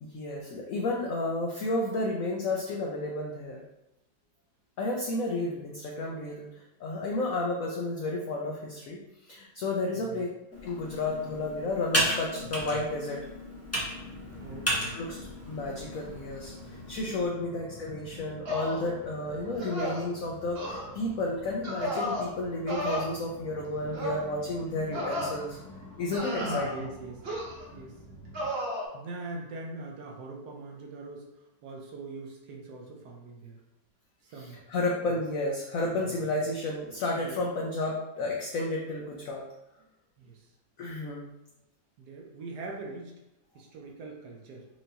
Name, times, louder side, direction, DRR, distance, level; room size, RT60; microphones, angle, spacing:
voice 1, 0.0-3.6 4.8-6.5 6.8-10.3 10.6-13.2 14.9-15.2 15.5-25.6 26.0-26.7 34.7-39.4 40.8-41.3, left 2 dB, 85° left, -1 dB, 0.7 m, -32 dB
voice 2, 9.9-10.3 12.4-12.5 14.3-15.0 25.9-26.0 26.4-28.0 28.9-33.6 34.2-34.6 35.0-35.2 35.9-36.2 37.1-37.4 40.2-40.5 42.0-43.1 43.5-44.7, right 3 dB, 70° right, 0 dB, 1.1 m, -42 dB
Computer keyboard, 10.5-17.3, equal, 15° left, 0.5 m, -34 dB
sound 1, 14.0-28.5, left 1 dB, 65° left, 1.6 m, -48 dB
sound 2, 18.4-18.9 19.6-20.1 20.5-20.8 21.6-22.3 22.7-23.0 23.9-24.2 24.9-25.3 26.1-26.8 27.2-27.7 28.3-28.9, equal, 50° right, 0.8 m, -33 dB
4.4 x 2.6 x 2.7 m, 0.91 s
omnidirectional pair, 2.0 m